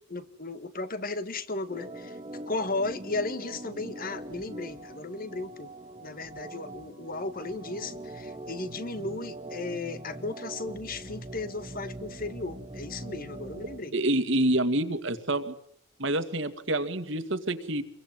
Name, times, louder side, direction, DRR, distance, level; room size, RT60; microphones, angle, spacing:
voice 1, 0.1-2.2 2.5-5.7 6.0-13.9, left 3 dB, 45° left, 12 dB, 1.6 m, -35 dB
Organ, 1.7-13.8, right 1 dB, 25° right, 2.0 m, -42 dB
voice 2, 13.9-15.6 16.0-17.8, right 1 dB, 60° right, 10 dB, 2.3 m, -27 dB
28.0 x 22.5 x 9.3 m, 0.69 s
head